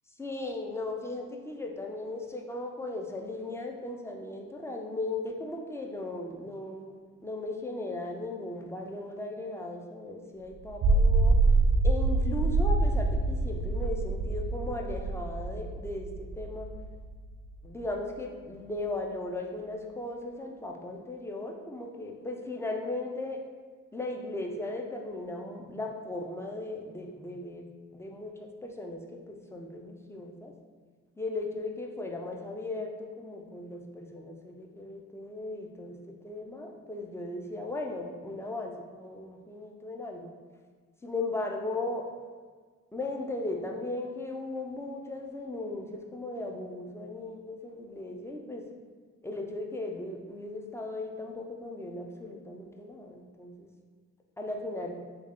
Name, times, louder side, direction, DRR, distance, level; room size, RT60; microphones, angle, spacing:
voice 1, 0.2-11.4 11.8-16.7 17.6-23.4 23.9-27.6 27.9-30.5 31.2-40.3 41.0-42.1 42.9-48.7 49.2-53.7 54.4-55.0, left 2 dB, 10° left, 1 dB, 0.4 m, -37 dB
sound 1, 10.6-17.1, right 3 dB, 60° right, 0.5 m, -25 dB
3.2 x 2.3 x 3.6 m, 1.5 s
cardioid pair, 80°, 33 cm